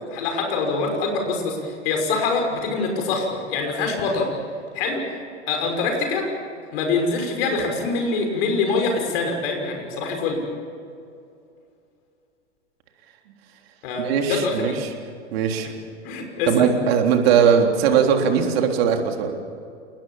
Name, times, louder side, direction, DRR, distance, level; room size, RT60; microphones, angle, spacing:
voice 1, 0.1-4.3 4.7-5.0 5.5-6.3 6.7-10.4 13.8-14.8 16.0-16.7, left 3 dB, 55° left, 3 dB, 6.1 m, -24 dB
voice 2, 14.0-14.7 15.3-15.7 16.5-19.3, right 7 dB, 55° right, 3 dB, 3.6 m, -19 dB
29.0 x 20.5 x 7.3 m, 2.5 s
figure-of-eight pair, 100°, 35 cm